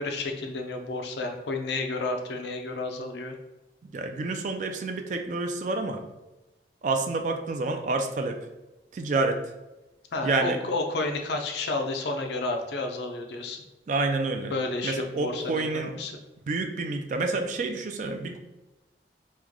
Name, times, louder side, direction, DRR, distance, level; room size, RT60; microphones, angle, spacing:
voice 1, 0.0-3.3 10.1-13.6 14.5-16.1, left 2 dB, 75° left, 4 dB, 0.5 m, -31 dB
voice 2, 3.9-6.0 6.8-8.4 8.9-9.4 10.2-10.6 13.9-14.5 14.8-15.9 16.5-18.4, right 3 dB, 45° right, 5 dB, 0.3 m, -28 dB
3.1 x 2.1 x 3.6 m, 1.0 s
head